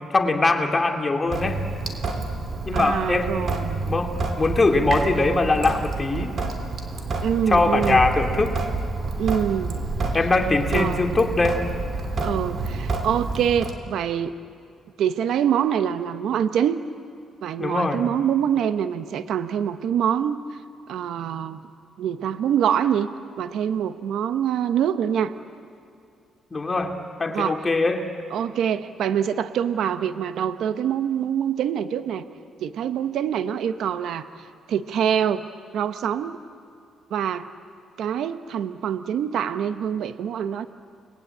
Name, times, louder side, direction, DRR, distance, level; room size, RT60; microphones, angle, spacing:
voice 1, 0.1-1.6 2.7-3.5 3.9-6.4 7.5-8.6 10.1-11.6 17.6-18.0 26.5-28.1, left 3 dB, 25° left, 3 dB, 2.3 m, -22 dB
Sink (filling or washing) / Drip, 1.3-13.7, right 3 dB, 50° right, 3.4 m, -28 dB
voice 2, 2.7-3.9 7.2-8.0 9.2-9.8 10.5-11.2 12.2-14.3 15.0-16.8 17.4-20.4 20.9-21.7 22.0-23.1 23.4-25.3 27.3-27.6 28.3-32.2 32.6-34.3 34.7-35.5 35.7-36.4 37.1-37.5 38.0-40.7, right 9 dB, 75° right, 10 dB, 1.0 m, -25 dB
30.0 x 21.0 x 8.8 m, 2.4 s
cardioid pair, 90°, 0 cm